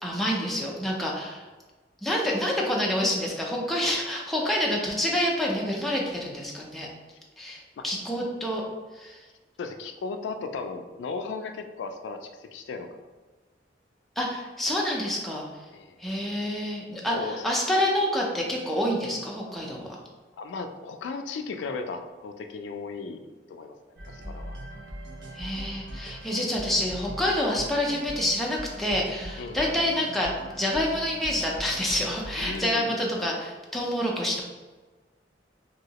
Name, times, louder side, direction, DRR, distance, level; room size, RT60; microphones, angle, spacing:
voice 1, 0.0-1.4 2.0-6.9 7.4-8.6 8.9-9.2 14.2-15.4 16.0-20.0 25.3-30.3 30.6-34.4, left 1 dB, ahead, -3 dB, 0.4 m, -27 dB
voice 2, 9.6-13.0 15.7-16.0 17.1-17.4 20.4-23.8 24.1-24.6 29.4-29.6 32.4-33.0, left 4 dB, 80° left, 6 dB, 0.3 m, -36 dB
sound 1, 24.0-32.6, equal, 80° right, 0.7 m, -41 dB
2.9 x 2.7 x 2.8 m, 1.3 s
head